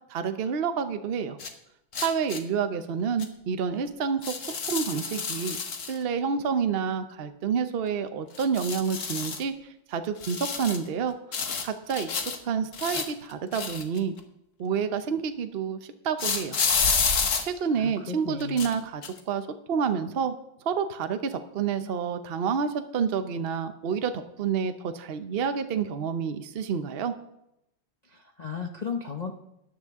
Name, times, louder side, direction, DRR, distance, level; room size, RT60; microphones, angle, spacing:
voice 1, 0.1-1.4 2.0-4.3 4.7-5.6 5.9-9.5 9.9-14.1 14.6-15.8 16.0-16.6 17.4-19.0 19.3-20.4 20.6-27.1, right 6 dB, 85° right, 9 dB, 0.5 m, -29 dB
sound 1, 1.4-1.5 1.9-2.4 3.2-3.3 4.2-6.0 8.3-9.4 10.2-10.9 11.3-12.4 12.7-14.2 16.2-17.4 18.4-18.7 19.0-19.2, left 5 dB, 45° left, 1.3 m, -29 dB
voice 2, 17.7-18.7 28.0-29.3, left 6 dB, 85° left, 2 dB, 0.3 m, -35 dB
13.0 x 10.0 x 3.6 m, 0.81 s
omnidirectional pair, 2.1 m